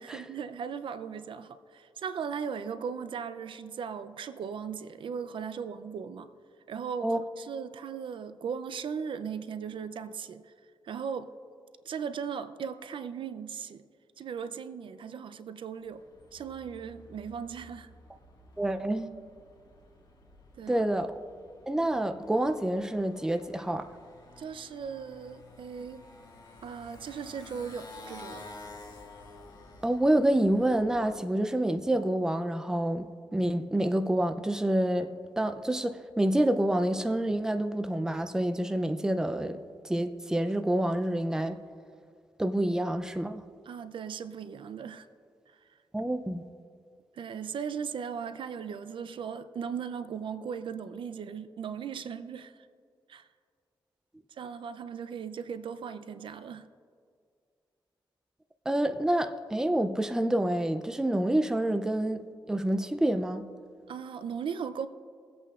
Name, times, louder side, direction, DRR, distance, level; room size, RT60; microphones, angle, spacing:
voice 1, 0.0-6.3 6.7-10.5 10.8-11.3 11.8-13.8 14.2-16.0 16.3-17.9 20.6-20.8 24.4-26.0 26.6-28.4 43.7-45.1 47.2-52.5 53.1-53.3 54.4-56.7 63.9-64.9, right 7 dB, 70° right, 0.5 m, -37 dB
Motorcycle, 15.8-31.2, left 2 dB, 50° left, 1.7 m, -51 dB
voice 2, 18.6-19.1 20.7-21.1 21.7-23.9 29.8-33.0 33.3-35.1 35.4-39.6 39.8-41.6 42.4-43.4 45.9-46.4 58.7-63.5, right 1 dB, 5° right, 0.4 m, -27 dB
23.0 x 8.2 x 2.4 m
wide cardioid pair, 105°, 9 cm